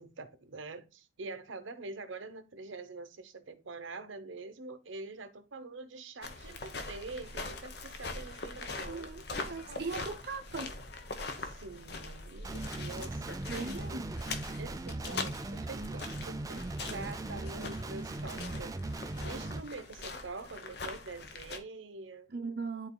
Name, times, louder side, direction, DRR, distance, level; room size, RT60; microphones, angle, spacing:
voice 1, 0.0-9.8 11.4-14.0 14.6-22.3, right 3 dB, 85° right, 0.9 m, -45 dB
sound 1, 6.2-21.6, left 3 dB, 55° left, 0.9 m, -42 dB
voice 2, 8.9-10.8 13.5-14.1 22.3-22.9, right 4 dB, 55° right, 0.7 m, -39 dB
Guitar, 12.4-19.6, right 2 dB, 20° right, 0.3 m, -39 dB
11.0 x 4.0 x 2.2 m
head